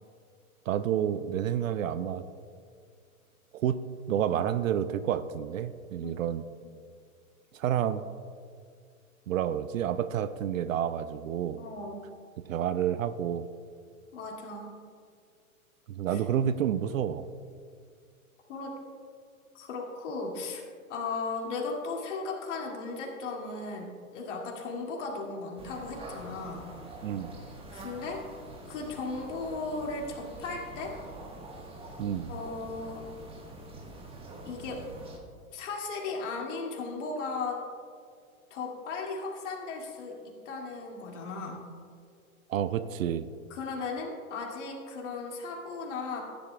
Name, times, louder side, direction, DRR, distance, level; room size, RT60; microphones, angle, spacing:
voice 1, 0.7-2.2 3.5-3.8 4.1-6.4 7.5-8.1 9.3-11.6 12.5-13.5 15.9-17.3 27.0-27.3 32.0-32.3 42.5-43.3, right 9 dB, 65° right, 14 dB, 0.6 m, -29 dB
voice 2, 11.6-12.0 14.1-14.7 16.1-16.2 18.5-18.7 19.5-26.7 27.7-28.2 28.7-31.0 32.3-33.0 34.4-34.8 35.5-37.6 38.5-41.6 43.5-46.2, left 3 dB, 55° left, 0 dB, 2.4 m, -36 dB
sound 1, 25.6-35.2, right 2 dB, 15° right, 1.4 m, -46 dB
15.0 x 10.5 x 2.3 m, 2.2 s
hypercardioid pair, 115°, 43 cm